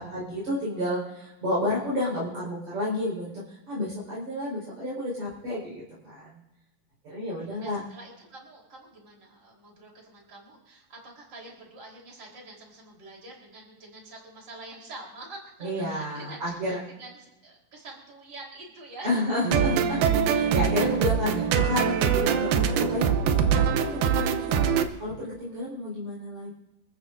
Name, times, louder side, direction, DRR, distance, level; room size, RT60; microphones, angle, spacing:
voice 1, 0.0-6.4 7.0-7.8 15.6-16.8 19.0-20.0 20.3-26.5, left 1 dB, 50° right, -7 dB, 6.0 m, -31 dB
voice 2, 7.4-19.1 20.3-20.4 21.2-21.4, right 2 dB, 30° right, -1 dB, 4.5 m, -46 dB
sound 1, 19.4-24.9, right 7 dB, 90° right, 2.7 m, -23 dB
27.0 x 14.5 x 2.7 m, 1.0 s
omnidirectional pair, 4.1 m